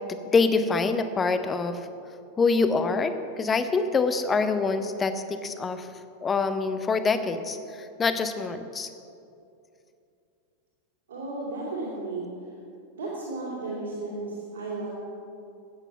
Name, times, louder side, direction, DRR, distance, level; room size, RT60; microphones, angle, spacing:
voice 1, 0.1-1.8 2.4-5.9 6.2-8.9, left 4 dB, 20° left, 10 dB, 0.8 m, -25 dB
voice 2, 11.1-12.3 12.9-14.9, right 2 dB, 65° right, -6 dB, 3.1 m, -34 dB
13.0 x 9.0 x 5.9 m, 2.5 s
figure-of-eight pair, 90°, 0 cm